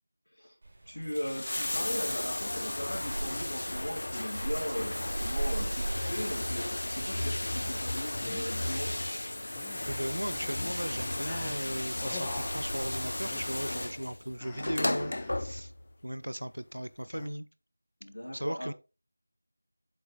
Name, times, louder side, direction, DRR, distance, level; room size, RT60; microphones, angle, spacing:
sound 1, 0.6-12.9, right 2 dB, 30° right, 3.3 m, -42 dB
voice 1, 0.8-8.9 18.0-18.7, equal, 75° left, 3.9 m, -38 dB
Bathtub (filling or washing), 1.0-15.9 17.0-17.1, left 1 dB, 55° left, 0.5 m, -34 dB
sound 2, 8.0-8.6 9.6-11.0 11.3-12.9 13.2-13.6 14.4-15.5 17.1-17.4, left 3 dB, 5° left, 0.7 m, -46 dB
voice 2, 9.9-15.7 16.0-17.5 18.3-18.7, equal, 80° right, 0.5 m, -37 dB
8.2 x 7.9 x 2.2 m
figure-of-eight pair, 170°, 0 cm